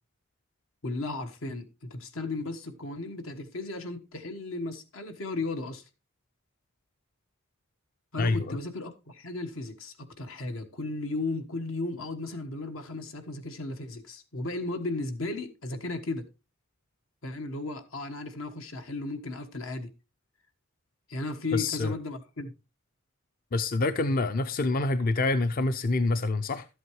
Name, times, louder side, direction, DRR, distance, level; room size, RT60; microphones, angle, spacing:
voice 1, 0.8-5.8 8.1-16.3 17.2-19.9 21.1-22.5, left 2 dB, 80° left, 1.4 m, -35 dB
voice 2, 8.2-8.6 21.5-21.9 23.5-26.7, left 2 dB, 45° left, 0.5 m, -26 dB
12.5 x 8.1 x 3.1 m
head